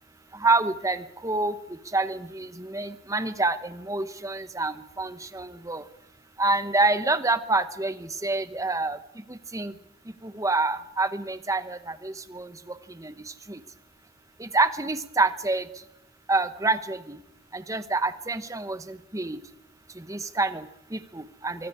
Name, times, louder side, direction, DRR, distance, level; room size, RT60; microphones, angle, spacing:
voice 1, 0.3-5.9 6.4-9.8 10.2-13.6 14.4-15.8 16.3-17.2 17.5-19.4 19.9-21.7, right 3 dB, 15° right, 11 dB, 1.0 m, -27 dB
25.5 x 23.5 x 4.9 m, 0.84 s
head